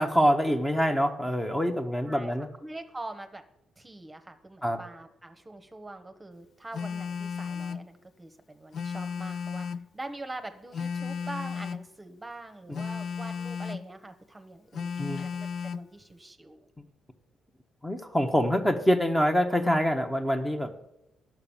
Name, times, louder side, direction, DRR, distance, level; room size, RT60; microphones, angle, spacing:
voice 1, 0.0-2.5 4.6-4.8 12.7-12.8 15.0-15.3 17.8-20.7, equal, 10° left, 5 dB, 1.0 m, -25 dB
voice 2, 2.6-3.4 3.8-9.7 9.9-16.7, right 2 dB, 15° right, 8 dB, 1.1 m, -43 dB
Telephone, 6.7-7.9 8.7-9.9 10.7-11.9 12.7-13.9 14.7-15.9, left 6 dB, 60° left, 0.4 m, -34 dB
10.5 x 6.0 x 7.2 m, 0.86 s
cardioid pair, 90°, 0 cm